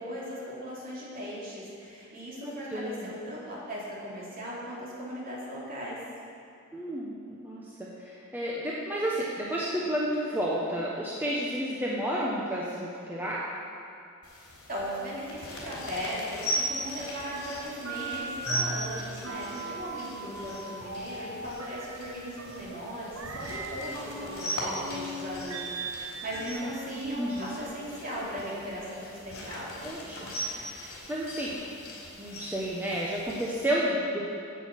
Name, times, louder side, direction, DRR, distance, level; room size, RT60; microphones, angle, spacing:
voice 1, 0.0-6.0 14.7-29.9, equal, 40° right, -6 dB, 3.2 m, -38 dB
voice 2, 2.3-3.1 6.7-13.6 20.1-20.5 26.4-26.7 27.2-27.5 29.8-30.3 30.6-31.6 32.2-34.2, equal, 10° right, -6 dB, 1.0 m, -32 dB
sound 1, 14.2-33.7, equal, 75° left, 3.4 m, -39 dB
sound 2, 17.8-26.5, right 2 dB, 70° right, 0.8 m, -39 dB
9.9 x 8.0 x 7.5 m, 2.5 s
head